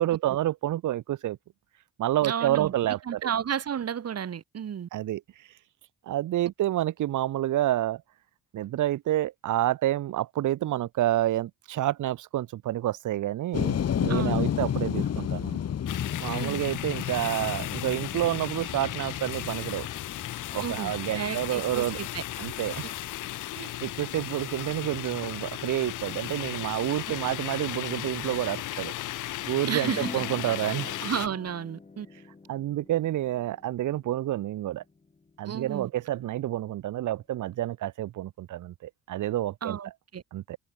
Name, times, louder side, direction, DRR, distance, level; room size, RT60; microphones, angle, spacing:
voice 1, 0.0-1.4 2.0-3.3 4.9-5.2 6.1-8.0 8.5-15.6 16.2-19.9 20.5-22.0 22.4-22.9 23.5-28.9 29.5-31.0 32.5-34.8 35.4-39.8 40.3-40.6, right 13 dB, 80° right, 2.5 m, -29 dB
voice 2, 2.2-2.7 3.1-4.9 14.1-14.5 16.3-16.6 20.6-22.2 27.2-27.3 29.7-30.1 31.0-32.1 35.5-35.9 39.6-40.2, right 8 dB, 55° right, 4.6 m, -32 dB
sound 1, 13.5-29.5, left 9 dB, 55° left, 3.4 m, -34 dB
sound 2, 15.9-31.3, left 15 dB, 85° left, 3.3 m, -36 dB
sound 3, 29.7-36.3, left 3 dB, 20° left, 2.1 m, -45 dB
cardioid pair, 90°, 30 cm